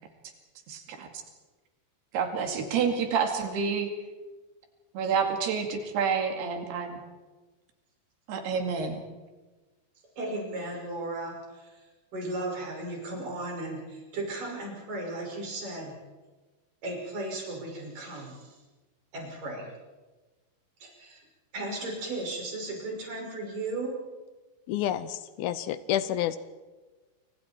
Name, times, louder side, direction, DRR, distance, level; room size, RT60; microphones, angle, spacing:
voice 1, 0.7-1.1 2.1-3.9 4.9-7.0 8.3-9.1, right 6 dB, 85° right, 4 dB, 4.4 m, -28 dB
voice 2, 10.2-11.8 12.1-16.0 16.8-18.6 19.1-19.7 20.8-21.2 21.5-24.0, right 2 dB, 55° right, -1 dB, 7.7 m, -35 dB
voice 3, 24.7-26.4, left 11 dB, 75° left, 13 dB, 2.6 m, -29 dB
28.5 x 25.0 x 4.6 m, 1.2 s
omnidirectional pair, 4.5 m